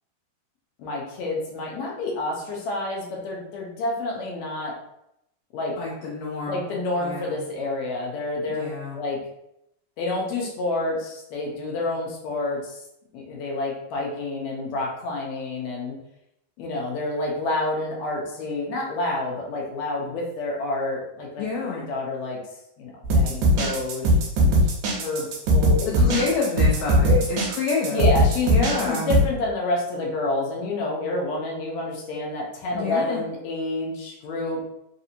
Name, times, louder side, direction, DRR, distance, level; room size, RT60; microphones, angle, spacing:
voice 1, 0.8-4.8 5.5-5.7 6.5-8.6 8.9-9.2 10.0-12.7 13.1-16.0 16.6-21.4 21.7-22.4 22.8-25.3 25.5-26.2 27.1-27.2 27.9-28.5 28.8-34.6, left 2 dB, 70° left, -2 dB, 1.8 m, -28 dB
voice 2, 5.8-6.6 7.0-7.4 8.5-9.0 21.4-21.9 25.9-28.1 28.5-29.1 32.7-33.2, left 4 dB, 85° left, -3 dB, 1.5 m, -28 dB
sound 1, 23.0-29.2, equal, 75° right, 2.1 m, -19 dB
5.0 x 2.6 x 2.7 m, 0.81 s
omnidirectional pair, 3.8 m